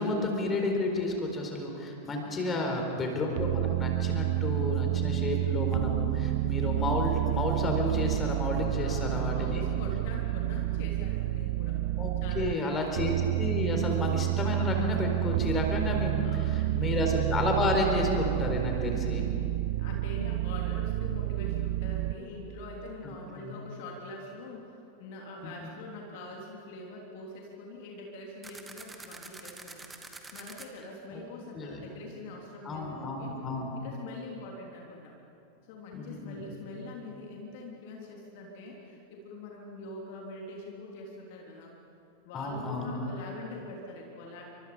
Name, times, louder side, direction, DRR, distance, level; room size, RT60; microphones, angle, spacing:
voice 1, 0.0-9.6 12.0-19.3 23.4-23.5 25.4-25.7 31.1-31.2 31.5-31.8 32.6-33.8 35.9-36.5 42.3-43.0, left 2 dB, 20° left, 2 dB, 4.4 m, -31 dB
voice 2, 2.4-2.8 8.8-11.8 12.2-13.0 16.2-17.0 18.7-18.8 19.3-29.8 30.3-33.3 33.7-35.1 35.7-41.7 42.2-44.4, left 2 dB, 50° left, -1 dB, 3.4 m, -44 dB
sound 1, 3.4-12.5 12.9-22.1, right 16 dB, 50° right, 0.7 m, -29 dB
sound 2, 28.4-30.7, right 3 dB, 10° right, 2.0 m, -45 dB
29.5 x 25.0 x 5.1 m, 2.8 s
figure-of-eight pair, 90°, 0 cm